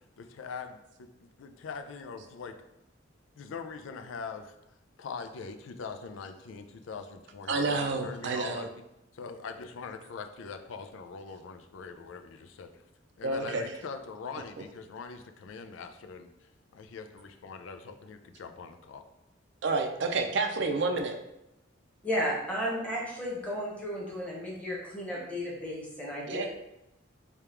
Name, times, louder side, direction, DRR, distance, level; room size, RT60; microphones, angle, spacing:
voice 1, 0.2-2.6 3.4-4.5 5.0-8.6 9.1-12.8 13.2-16.3 16.7-19.0, left 5 dB, 90° left, 7 dB, 0.4 m, -42 dB
voice 2, 7.5-8.7 13.2-13.6 19.6-21.1 26.3-26.5, right 3 dB, 65° right, 4 dB, 0.5 m, -29 dB
voice 3, 22.0-26.5, equal, 5° left, -4 dB, 1.0 m, -33 dB
3.4 x 2.4 x 4.4 m, 0.87 s
head